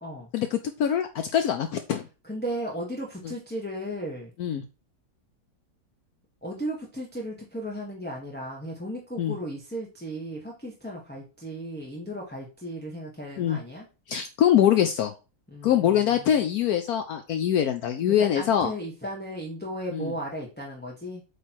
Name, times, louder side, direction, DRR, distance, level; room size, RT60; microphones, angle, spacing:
voice 1, 0.3-2.1 3.2-3.3 4.4-4.6 9.2-9.3 13.4-13.6 14.1-15.1 15.6-18.7 19.9-20.1, left 10 dB, 70° left, 7 dB, 1.1 m, -23 dB
voice 2, 2.2-4.3 6.4-13.9 15.5-16.4 18.1-21.2, equal, 5° left, -3 dB, 1.3 m, -35 dB
8.1 x 3.4 x 4.5 m, 0.31 s
omnidirectional pair, 1.8 m